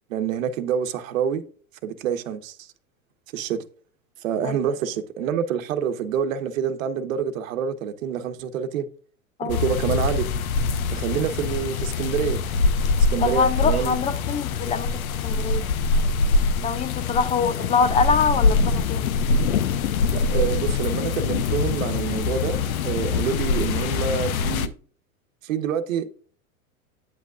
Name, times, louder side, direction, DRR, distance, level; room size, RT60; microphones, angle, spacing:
voice 1, 0.1-1.4 1.8-2.7 3.3-3.6 4.2-8.9 9.4-10.3 10.9-12.4 13.1-14.0 20.1-22.6 22.8-24.7 25.4-26.2, right 8 dB, 65° right, 1.1 m, -27 dB
sound 1, 9.5-24.7, left 4 dB, 70° left, 0.8 m, -24 dB
voice 2, 13.2-15.6 16.6-19.1, left 5 dB, 15° left, 0.5 m, -24 dB
9.0 x 8.1 x 2.4 m
hypercardioid pair, 95°, 43 cm